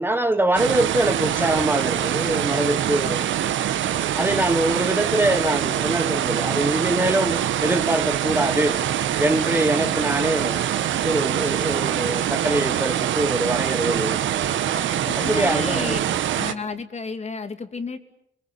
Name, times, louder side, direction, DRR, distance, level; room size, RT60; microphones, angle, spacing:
voice 1, 0.0-3.2 4.2-8.8 9.2-10.6 11.0-14.5 15.1-16.0, right 1 dB, 10° right, 1.3 m, -23 dB
sound 1, 0.5-16.5, right 10 dB, 75° right, 1.5 m, -24 dB
voice 2, 14.7-16.0 16.3-18.0, left 4 dB, 35° left, 2.8 m, -32 dB
29.5 x 22.0 x 8.8 m
cardioid pair, 90°, 20 cm